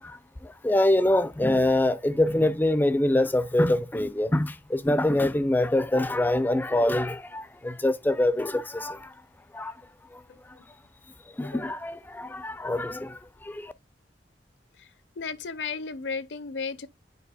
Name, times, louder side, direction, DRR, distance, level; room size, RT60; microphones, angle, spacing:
voice 1, 0.0-9.1 9.5-9.8 10.1-10.2 11.4-13.7, left 1 dB, 10° left, 0.4 m, -25 dB
voice 2, 15.2-16.9, left 5 dB, 80° left, 0.6 m, -33 dB
9.7 x 4.6 x 2.3 m
head